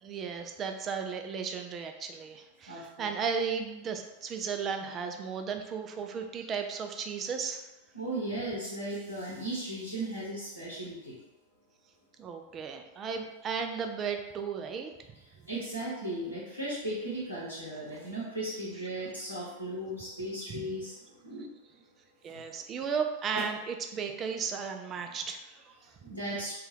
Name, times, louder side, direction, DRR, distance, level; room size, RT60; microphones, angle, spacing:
voice 1, 0.0-7.7 12.2-14.9 20.5-20.6 22.2-25.9, right 6 dB, 30° right, 5 dB, 0.3 m, -35 dB
voice 2, 2.7-3.1 7.9-11.1 15.5-20.9 21.2-21.5 26.0-26.5, right 1 dB, 90° left, -8 dB, 0.8 m, -36 dB
2.6 x 2.3 x 3.3 m, 1.0 s
figure-of-eight pair, 90°, 0 cm